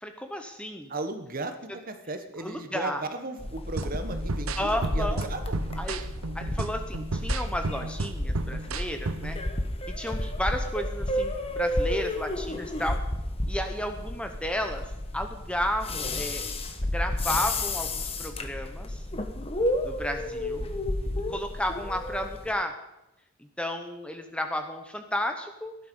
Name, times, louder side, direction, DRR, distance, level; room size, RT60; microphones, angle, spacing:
voice 1, 0.0-0.9 2.4-3.0 4.6-5.2 5.8-6.0 6.3-9.4 10.0-13.0 13.5-14.8 15.1-16.5 16.8-19.1 19.8-20.7 21.3-22.7 23.4-25.8, left 1 dB, 5° left, 6 dB, 0.8 m, -33 dB
voice 2, 0.9-5.6 20.3-21.4, right 2 dB, 40° right, 8 dB, 1.3 m, -36 dB
sound 1, 3.4-22.5, left 1 dB, 25° left, 1.2 m, -31 dB
sound 2, 3.8-9.4, right 3 dB, 70° right, 0.8 m, -34 dB
17.0 x 11.5 x 5.5 m, 0.95 s
head